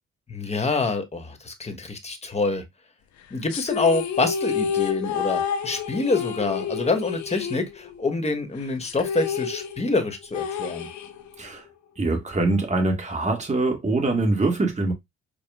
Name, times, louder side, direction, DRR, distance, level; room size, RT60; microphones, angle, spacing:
voice 1, 0.3-2.6 3.3-10.9, left 3 dB, 20° left, 1.1 m, -26 dB
sound 1, 3.5-8.2 8.4-8.5 8.8-11.5, left 7 dB, 70° left, 0.7 m, -29 dB
voice 2, 12.0-14.9, right 2 dB, 25° right, 1.6 m, -23 dB
4.8 x 2.2 x 3.5 m
cardioid pair, 90°, 30 cm